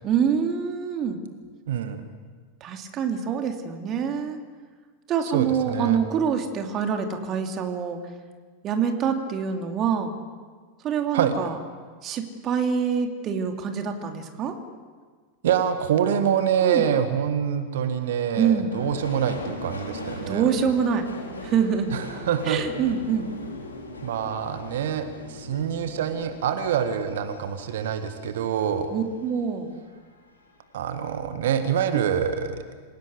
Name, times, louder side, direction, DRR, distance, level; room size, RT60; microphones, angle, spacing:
voice 1, 0.0-1.2 2.6-4.4 5.1-8.0 8.6-10.1 10.8-11.6 12.0-14.6 16.6-16.9 18.4-18.7 20.2-21.1 21.4-21.9 22.4-23.3 28.9-29.7 31.9-32.0, right 7 dB, 30° right, 4 dB, 2.9 m, -25 dB
voice 2, 1.7-2.1 5.3-6.0 11.1-11.3 15.4-20.5 21.9-22.6 24.0-28.9 30.7-32.6, right 8 dB, 60° right, 8 dB, 1.7 m, -25 dB
Subway metro underground, 18.7-29.4 29.8-30.5 30.8-30.9, left 2 dB, 75° left, 4.7 m, -39 dB
27.0 x 17.0 x 8.4 m, 1.5 s
figure-of-eight pair, 90°, 0 cm